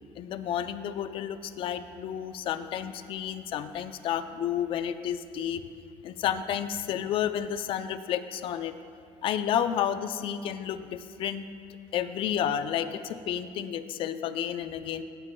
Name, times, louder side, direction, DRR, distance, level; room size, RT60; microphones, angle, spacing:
voice 1, 0.2-5.6 6.0-8.7 9.2-11.4 11.9-15.0, left 9 dB, 50° left, 10 dB, 0.5 m, -31 dB
18.0 x 8.9 x 2.2 m, 2.4 s
cardioid pair, 140°, 12 cm